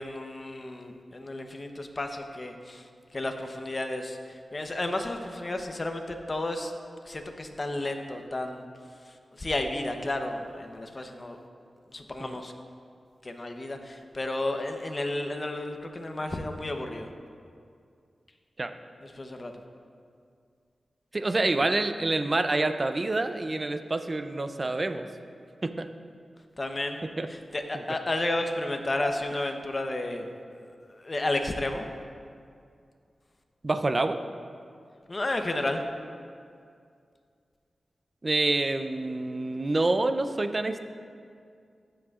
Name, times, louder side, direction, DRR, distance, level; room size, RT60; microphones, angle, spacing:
voice 1, 0.0-6.7 7.1-8.6 9.3-11.4 11.9-12.5 13.2-17.1 19.0-19.5 26.6-30.3 30.9-31.8 35.1-35.8, left 2 dB, 35° left, 5 dB, 0.8 m, -32 dB
voice 2, 21.1-25.1 25.6-25.9 27.2-27.3 27.7-27.8 33.6-34.2 38.2-40.8, right 2 dB, 35° right, 9 dB, 0.5 m, -27 dB
15.0 x 7.7 x 2.4 m, 2.3 s
wide cardioid pair, 70°, 0 cm